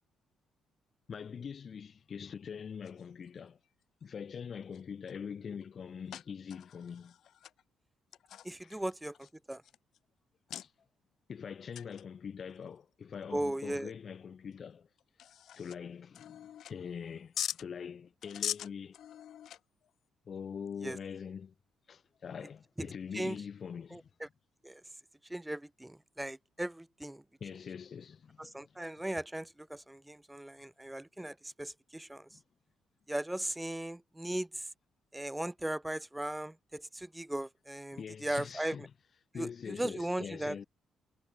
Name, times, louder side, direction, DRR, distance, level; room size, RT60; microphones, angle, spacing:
voice 1, 1.1-3.6 4.0-7.1 8.6-8.8 10.6-10.7 11.3-14.9 15.6-19.0 20.3-21.5 21.9-24.1 27.4-28.8 32.3-32.4 37.9-38.9 39.3-40.7, left 7 dB, 50° left, 5.7 m, -43 dB
sound 1, 2.8-3.3 4.1-4.2 4.6-5.1 5.6-5.7 6.1-7.6 8.1-10.0 10.5-10.7 11.7-12.0 12.4-12.5 13.1-13.2 13.8-13.9 14.5-14.6 15.0-15.8 16.1-17.0 17.3-17.6 18.2-19.9, left 10 dB, 70° left, 6.9 m, -42 dB
voice 2, 8.4-9.6 13.3-13.9 20.8-21.0 23.1-23.4 23.9-24.3 24.6-24.8 25.3-27.2 28.4-32.3 33.1-34.7 35.1-38.9 39.3-40.6, right 1 dB, 10° right, 5.5 m, -38 dB
cardioid pair, 90°, 0 cm